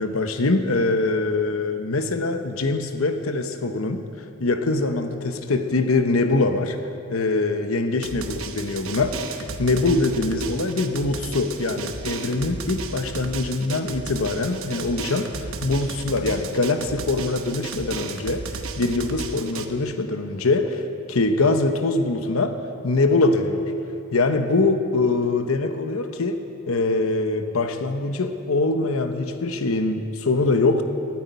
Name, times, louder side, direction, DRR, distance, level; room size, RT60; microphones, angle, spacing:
voice 1, 0.0-4.0 4.4-6.8 7.1-20.8 21.1-22.6 22.8-23.7 24.1-26.4 26.7-30.8, left 3 dB, 75° left, 7 dB, 0.9 m, -23 dB
Drum, 8.0-19.7, right 4 dB, 70° right, 0.9 m, -34 dB
12.0 x 9.7 x 9.3 m, 2.6 s
head